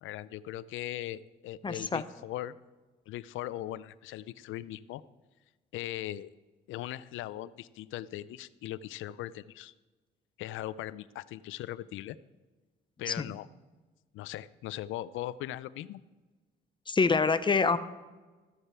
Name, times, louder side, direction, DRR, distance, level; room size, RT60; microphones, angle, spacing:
voice 1, 0.0-2.5 3.1-5.0 5.7-6.3 6.7-9.7 10.4-12.2 13.0-13.5 14.1-16.0, left 14 dB, 85° left, 17 dB, 0.4 m, -39 dB
voice 2, 1.6-2.0 13.1-13.3 16.9-17.8, left 4 dB, 25° left, 12 dB, 0.7 m, -26 dB
14.5 x 6.7 x 4.4 m, 1.2 s
cardioid pair, 90°, 20 cm